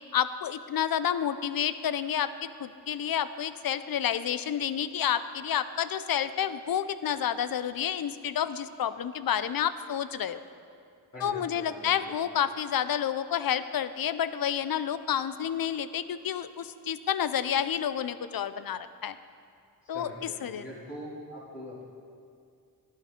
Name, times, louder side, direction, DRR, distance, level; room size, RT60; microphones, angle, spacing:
voice 1, 0.1-2.3 2.6-10.4 11.2-19.2 19.9-20.1 20.4-20.6, left 9 dB, 60° left, 13 dB, 0.5 m, -29 dB
voice 2, 11.1-12.2 19.8-21.8, equal, 30° left, -10 dB, 2.7 m, -43 dB
12.0 x 10.0 x 3.7 m, 2.3 s
cardioid pair, 60°, 40 cm